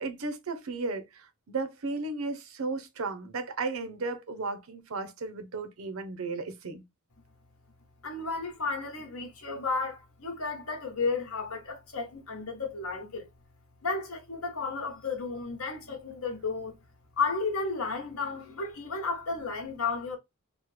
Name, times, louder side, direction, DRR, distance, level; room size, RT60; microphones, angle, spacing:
voice 1, 0.0-6.8, right 3 dB, 75° right, 0.6 m, -34 dB
voice 2, 8.0-13.3 13.8-16.7 17.2-20.2, left 4 dB, 75° left, 1.1 m, -33 dB
3.1 x 2.1 x 3.2 m
head